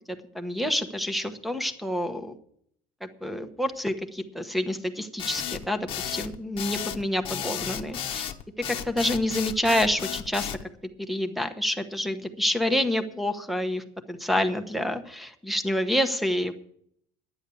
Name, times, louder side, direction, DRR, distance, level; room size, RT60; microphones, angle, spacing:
voice 1, 0.1-2.4 3.0-8.3 8.7-10.5 11.0-16.5, left 1 dB, ahead, 10 dB, 1.0 m, -28 dB
sound 1, 5.2-10.6, left 10 dB, 40° left, 1.0 m, -33 dB
11.0 x 9.8 x 7.0 m, 0.68 s
cardioid pair, 145°, 14 cm